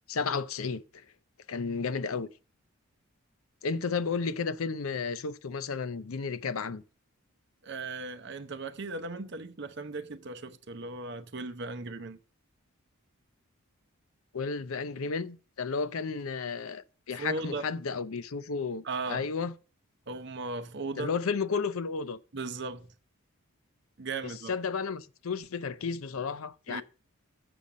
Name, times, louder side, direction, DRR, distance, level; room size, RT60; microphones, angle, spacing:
voice 1, 0.1-0.8 1.5-2.3 3.6-6.8 14.3-19.5 21.0-22.2 24.2-26.8, left 5 dB, 75° left, 0.6 m, -33 dB
voice 2, 7.6-12.2 17.2-17.7 18.8-19.3 20.1-21.1 22.3-22.9 24.0-24.5 26.7-26.8, right 3 dB, 50° right, 0.8 m, -37 dB
7.0 x 5.3 x 7.2 m
head